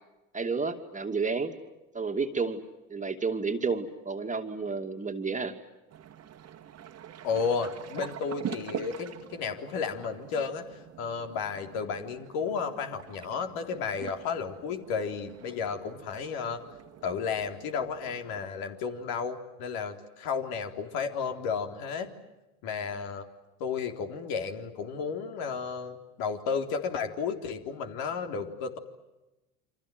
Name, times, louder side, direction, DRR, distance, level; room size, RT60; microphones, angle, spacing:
voice 1, 0.3-1.5 1.9-2.6 2.9-5.5, right 4 dB, 15° right, 5 dB, 2.6 m, -31 dB
sound 1, 5.9-18.5, right 9 dB, 35° right, 2.1 m, -45 dB
voice 2, 7.2-10.7 11.0-16.6 17.0-22.1 22.6-23.3 23.6-28.8, left 5 dB, 55° left, 5 dB, 3.9 m, -33 dB
29.0 x 26.0 x 7.8 m, 1.0 s
hypercardioid pair, 85°, 42 cm